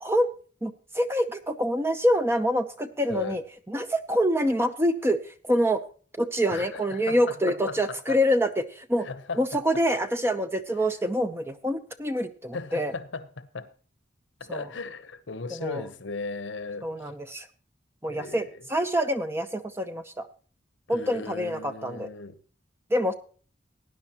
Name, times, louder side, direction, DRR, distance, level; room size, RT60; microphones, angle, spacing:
voice 1, 0.6-3.4 3.7-5.8 6.2-9.1 9.4-12.9 14.5-14.7 15.5-15.8 16.8-17.5 18.0-18.4 18.7-20.3 20.9-22.1 22.9-23.1, equal, 15° right, 0.7 m, -26 dB
voice 2, 3.1-3.4 6.5-8.2 9.0-9.8 12.5-13.7 14.4-17.1 18.1-18.7 20.9-22.4, left 4 dB, 75° left, 0.9 m, -37 dB
18.5 x 10.0 x 3.0 m
head